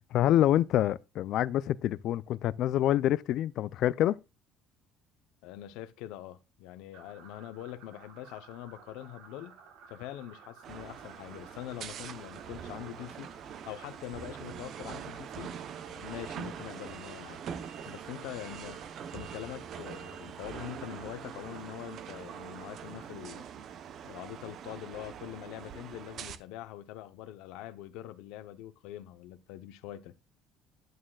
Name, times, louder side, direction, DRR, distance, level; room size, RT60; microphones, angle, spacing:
voice 1, 0.1-4.2, left 12 dB, 50° left, 0.4 m, -26 dB
voice 2, 5.4-9.6 9.9-13.3 13.6-15.6 15.9-17.4 17.9-18.8 19.1-23.4 24.0-30.1, left 13 dB, 80° left, 0.7 m, -44 dB
sound 1, 6.9-23.1, right 6 dB, 70° right, 3.9 m, -55 dB
sound 2, 10.6-26.4, right 8 dB, 40° right, 0.7 m, -43 dB
9.4 x 8.8 x 2.3 m
cardioid pair, 160°, 0 cm